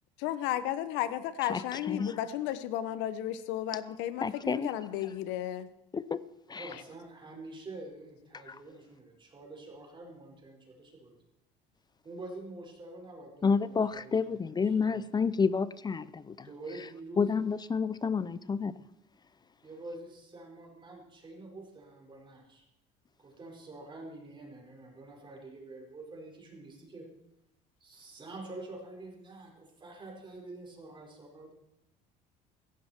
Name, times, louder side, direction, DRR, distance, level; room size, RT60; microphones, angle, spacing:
voice 1, 0.2-5.7 6.7-6.8, left 12 dB, 80° left, 14 dB, 1.2 m, -33 dB
voice 2, 4.2-4.7 5.9-6.2 6.5-6.7 8.5-8.6 13.4-16.5 17.2-18.7, left 5 dB, 20° left, 17 dB, 0.6 m, -29 dB
voice 3, 6.5-11.2 12.0-15.0 16.4-17.3 19.6-22.6 23.2-27.1 27.8-31.5, right 2 dB, 25° right, 0 dB, 5.2 m, -47 dB
16.0 x 15.0 x 4.5 m, 0.81 s
supercardioid pair, 100°, 19 cm